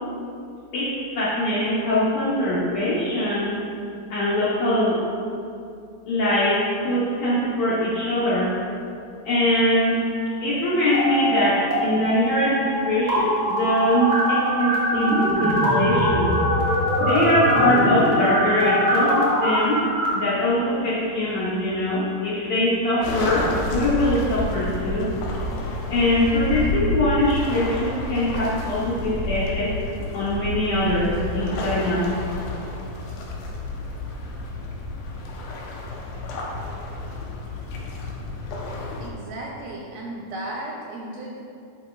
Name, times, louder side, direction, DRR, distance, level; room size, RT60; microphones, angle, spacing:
voice 1, 0.7-3.6 4.1-5.0 6.1-8.6 9.2-10.1 10.4-16.4 17.0-19.8 20.1-25.1 25.9-29.8 30.1-32.1, left 1 dB, 70° left, -9 dB, 1.8 m, -22 dB
sound 1, 10.8-11.8 12.0-20.1, equal, 50° right, 1.2 m, -22 dB
sound 2, 23.0-39.1, left 2 dB, 90° left, 2.8 m, -30 dB
voice 2, 39.0-41.4, right 1 dB, 75° right, -3 dB, 2.0 m, -35 dB
10.5 x 5.6 x 2.3 m, 2.5 s
omnidirectional pair, 4.4 m